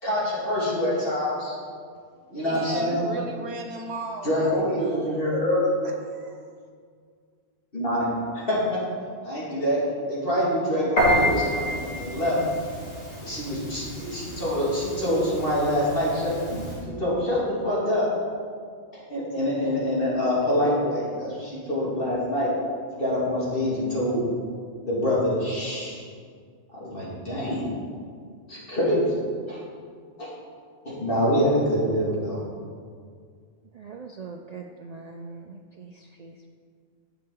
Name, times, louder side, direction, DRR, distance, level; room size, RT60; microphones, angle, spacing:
voice 1, 0.0-1.5 2.3-3.1 4.2-5.7 7.7-8.1 8.3-8.8 9.2-9.8 10.1-12.4 13.2-16.3 17.0-18.1 18.9-22.5 23.0-24.2 24.9-26.0 26.7-27.8 28.5-29.1 29.5-29.6 30.2-30.3 30.8-32.4, left 1 dB, 55° left, -7 dB, 2.5 m, -25 dB
voice 2, 2.3-4.5 4.8-5.3 5.8-6.4, right 3 dB, 75° right, 4 dB, 1.2 m, -36 dB
Piano, 11.0-16.8, equal, 75° left, 2.3 m, -29 dB
voice 3, 33.7-36.5, right 4 dB, 55° right, 3 dB, 0.4 m, -42 dB
10.5 x 7.1 x 3.8 m, 2.1 s
omnidirectional pair, 1.1 m